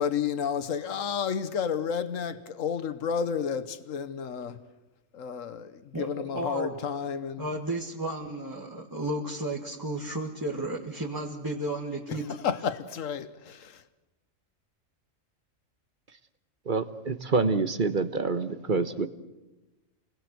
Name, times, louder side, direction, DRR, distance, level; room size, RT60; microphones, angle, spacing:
voice 1, 0.0-4.6 5.1-7.4 12.1-13.8, left 7 dB, 85° left, 1.4 m, -31 dB
voice 2, 5.9-6.8 7.4-12.3, right 1 dB, 15° right, 2.1 m, -33 dB
voice 3, 16.6-19.1, right 4 dB, 40° right, 1.3 m, -27 dB
28.5 x 20.5 x 7.9 m
omnidirectional pair, 1.3 m